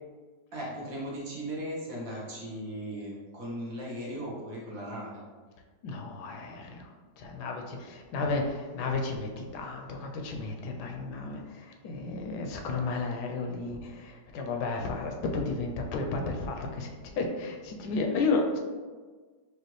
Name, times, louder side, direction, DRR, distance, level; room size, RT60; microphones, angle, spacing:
voice 1, 0.5-5.2, equal, 60° right, -5 dB, 1.3 m, -37 dB
voice 2, 5.8-18.6, left 3 dB, 80° left, 3 dB, 1.1 m, -33 dB
4.9 x 2.4 x 3.1 m, 1.4 s
omnidirectional pair, 1.8 m